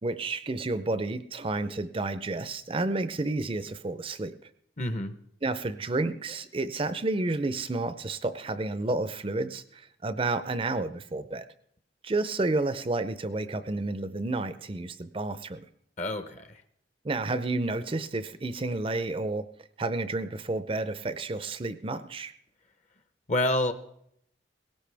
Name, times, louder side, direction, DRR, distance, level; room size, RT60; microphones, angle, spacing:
voice 1, 0.0-4.3 5.4-11.4 12.0-15.7 17.0-19.5 19.8-22.3, right 2 dB, 30° right, 12 dB, 0.5 m, -30 dB
voice 2, 4.8-5.1 16.0-16.5 23.3-23.7, left 1 dB, 40° left, 9 dB, 0.9 m, -27 dB
18.5 x 17.0 x 3.4 m, 0.72 s
head